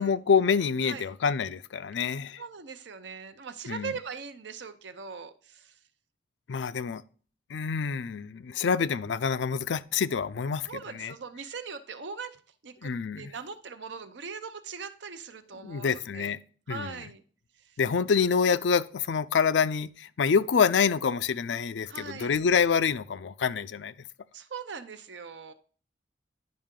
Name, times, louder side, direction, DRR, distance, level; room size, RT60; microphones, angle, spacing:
voice 1, 0.0-2.4 3.7-3.9 6.5-7.0 7.5-11.1 12.8-13.3 15.6-16.4 16.7-16.9 17.8-23.9, left 6 dB, 80° left, 0.4 m, -26 dB
voice 2, 2.4-5.8 10.7-12.4 12.6-16.3 16.7-17.2 17.6-17.8 21.9-22.4 24.3-25.5, right 5 dB, 75° right, 0.7 m, -41 dB
10.5 x 5.4 x 3.7 m
head